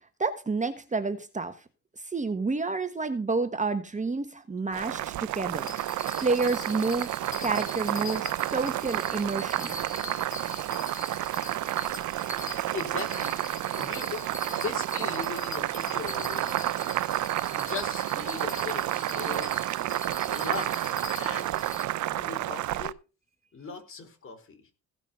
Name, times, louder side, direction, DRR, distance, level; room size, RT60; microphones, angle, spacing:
voice 1, 0.2-1.6 2.1-5.7 6.2-7.1 7.4-9.8, right 3 dB, 25° right, 1.3 m, -29 dB
Boiling, 4.7-22.9, right 15 dB, 75° right, 0.6 m, -30 dB
Bell, 5.5-21.9, left 3 dB, 25° left, 2.2 m, -42 dB
voice 2, 12.7-13.4 13.8-16.6 17.5-19.5 20.3-21.8 22.1-23.0 23.5-24.6, left 5 dB, 45° left, 4.4 m, -39 dB
16.5 x 6.1 x 5.7 m
cardioid pair, 90°, 30 cm